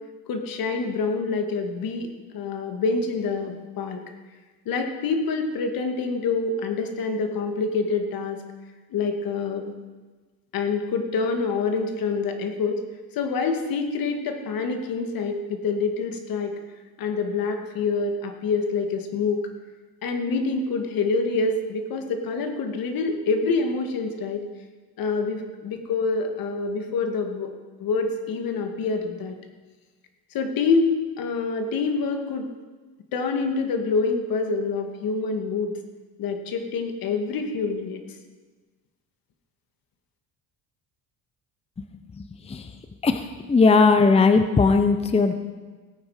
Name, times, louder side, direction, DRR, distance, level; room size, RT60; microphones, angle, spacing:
voice 1, 0.3-4.0 4.7-8.4 8.9-9.7 10.5-12.8 13.1-16.5 17.0-19.4 20.0-24.4 25.0-27.5 27.8-29.4 30.3-30.9 31.2-32.5 33.1-35.7 36.2-38.0, left 4 dB, 65° left, 5 dB, 2.0 m, -26 dB
voice 2, 43.0-45.3, left 4 dB, 15° left, 8 dB, 0.7 m, -18 dB
16.5 x 9.4 x 4.9 m, 1.3 s
cardioid pair, 100°, 38 cm